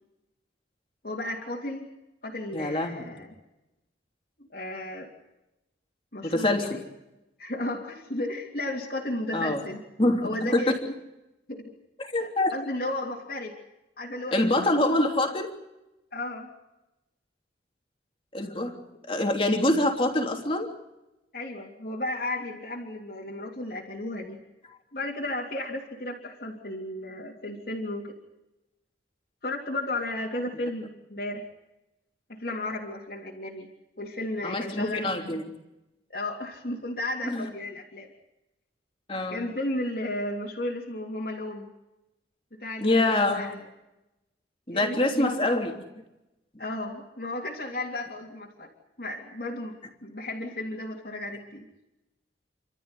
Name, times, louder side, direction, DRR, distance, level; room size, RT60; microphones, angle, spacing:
voice 1, 1.0-1.9 2.2-3.3 4.4-5.1 6.1-6.8 7.4-9.8 10.2-10.8 11.5-11.7 12.2-13.6 14.0-14.6 16.1-16.5 21.3-24.4 24.9-28.2 29.4-31.5 32.3-33.7 34.0-35.1 36.1-38.1 39.3-41.7 42.6-43.5 44.7-45.4 46.6-48.7 49.0-51.6, left 1 dB, 55° left, -3 dB, 3.2 m, -34 dB
voice 2, 2.5-3.0 6.2-6.8 9.3-9.6 10.0-10.6 12.1-12.5 14.3-15.5 18.3-18.8 19.1-20.7 34.4-35.4 37.2-37.5 39.1-39.4 42.8-43.5 44.7-45.7, left 1 dB, 30° left, 3 dB, 3.2 m, -25 dB
30.0 x 13.5 x 9.8 m, 0.96 s
head